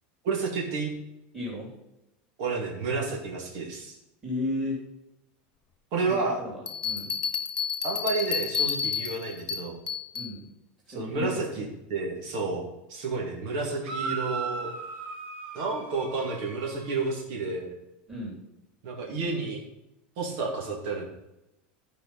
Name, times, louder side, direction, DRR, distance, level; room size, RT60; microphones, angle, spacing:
voice 1, 0.2-0.9 2.4-3.9 5.9-6.4 7.8-9.8 11.0-14.7 15.5-17.7 18.8-19.6 20.2-21.1, right 3 dB, 45° right, -1 dB, 2.3 m, -30 dB
voice 2, 1.3-1.7 4.2-4.8 6.0-7.1 10.1-10.5 10.9-11.7 18.1-18.4, left 2 dB, 10° right, -5 dB, 3.4 m, -34 dB
Bell, 6.7-10.3, left 6 dB, 15° left, 0.6 m, -30 dB
sound 1, 13.8-17.1, right 4 dB, 75° right, 2.6 m, -37 dB
13.5 x 4.7 x 5.5 m, 0.89 s
supercardioid pair, 175°, 6 cm